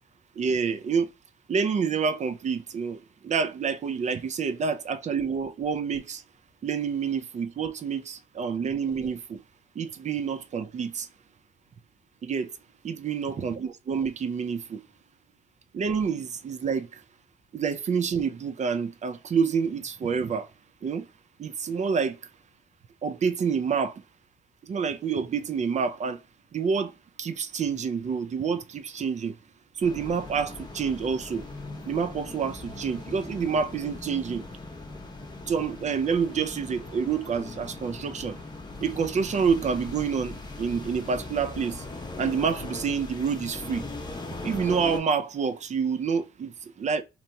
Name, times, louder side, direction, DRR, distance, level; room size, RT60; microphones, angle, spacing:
voice 1, 0.4-1.1 1.5-6.2 6.6-9.4 9.8-11.1 12.2-12.5 12.8-14.8 15.7-17.0 17.5-20.5 20.8-21.1 21.4-22.2 23.0-24.0 24.6-26.2 26.5-26.9 27.2-29.3 29.8-31.4 31.9-34.4 35.5-38.4 38.8-41.9 42.2-43.9 44.4-47.0, right 6 dB, 35° right, 0.4 m, -28 dB
sound 1, 29.8-45.0, left 2 dB, 20° left, 0.7 m, -39 dB
2.9 x 2.8 x 2.2 m
cardioid pair, 90°, 20 cm